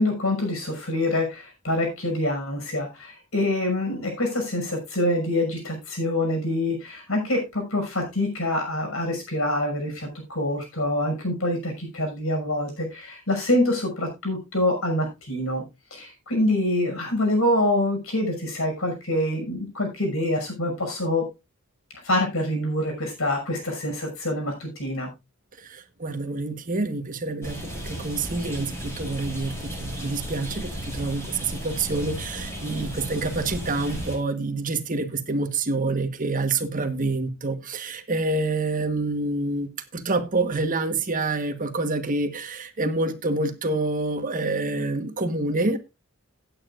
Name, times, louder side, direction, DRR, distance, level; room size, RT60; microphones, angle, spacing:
voice 1, 0.0-15.6 15.9-21.2 22.0-25.1, left 1 dB, 75° left, 5.9 m, -26 dB
voice 2, 25.6-45.8, right 3 dB, 40° right, 1.3 m, -27 dB
sound 1, 27.4-34.2, equal, 15° left, 6.3 m, -35 dB
17.0 x 8.9 x 2.5 m
head